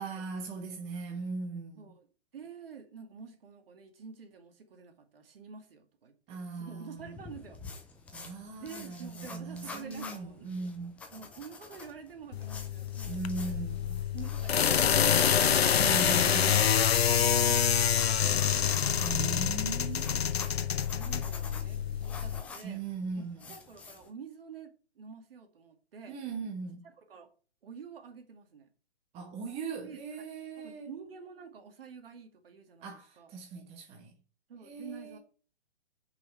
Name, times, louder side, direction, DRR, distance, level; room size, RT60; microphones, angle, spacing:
voice 1, 0.0-1.8 6.3-7.2 8.1-10.9 13.1-14.0 15.8-16.7 19.0-20.2 22.6-23.5 26.1-26.9 29.1-30.9 32.8-34.1 34.6-35.2, right 4 dB, 20° right, 1.3 m, -39 dB
voice 2, 1.8-2.1 2.3-7.6 8.6-10.7 11.1-13.6 14.1-16.1 16.9-18.9 19.2-19.5 19.8-20.3 20.7-22.8 23.2-26.2 26.8-27.3 27.6-28.7 29.8-30.3 30.6-33.3 34.5-35.2, right 6 dB, 60° right, 2.5 m, -49 dB
sound 1, 7.0-24.1, left 4 dB, 5° left, 0.5 m, -48 dB
sound 2, 12.3-22.4, left 8 dB, 65° left, 0.8 m, -27 dB
8.6 x 5.7 x 4.8 m
figure-of-eight pair, 135°, 33 cm